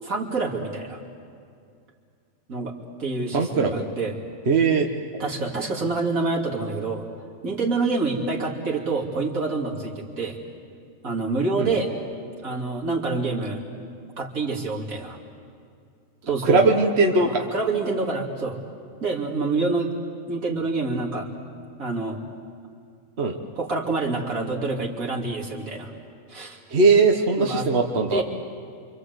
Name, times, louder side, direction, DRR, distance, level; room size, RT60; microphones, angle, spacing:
voice 1, 0.0-1.0 2.5-2.7 3.0-4.2 5.2-7.1 7.4-10.4 11.0-11.9 12.4-13.6 14.2-15.2 16.2-16.7 17.2-18.6 19.0-19.9 20.3-21.3 21.8-22.2 23.5-25.9 26.3-26.6 27.4-27.7 28.1-28.2, right 3 dB, 75° right, -2 dB, 3.2 m, -27 dB
voice 2, 3.3-3.8 4.5-4.9 11.6-11.7 16.4-17.4 23.2-23.4 26.7-28.2, right 3 dB, 50° right, 2 dB, 1.5 m, -19 dB
28.0 x 25.5 x 8.0 m, 2.4 s
omnidirectional pair, 1.4 m